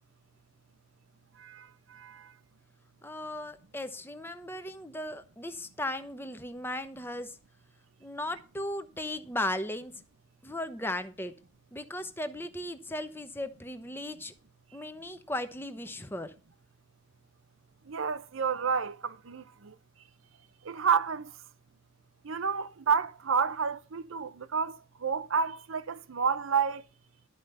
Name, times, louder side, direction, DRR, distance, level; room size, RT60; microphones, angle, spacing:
voice 1, 1.4-2.3 17.9-19.7 20.7-21.3 22.2-26.8, right 6 dB, 80° right, 0.7 m, -30 dB
voice 2, 3.0-7.4 8.0-9.9 10.4-11.3 11.7-14.3 14.7-16.3, left 1 dB, 10° left, 0.8 m, -36 dB
12.5 x 5.0 x 6.8 m
head